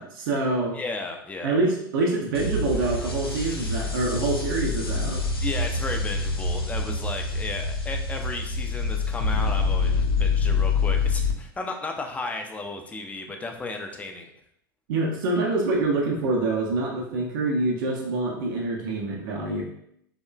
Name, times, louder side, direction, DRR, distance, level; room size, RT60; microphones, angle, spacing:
voice 1, 0.0-0.8 1.4-5.2 14.9-19.6, right 2 dB, 60° right, -2 dB, 0.5 m, -26 dB
voice 2, 0.7-1.6 5.4-14.3, left 3 dB, 10° left, 3 dB, 0.3 m, -34 dB
sound 1, 2.3-11.3, left 4 dB, 85° left, 0.4 m, -26 dB
2.9 x 2.1 x 2.2 m, 0.73 s
figure-of-eight pair, 85°, 12 cm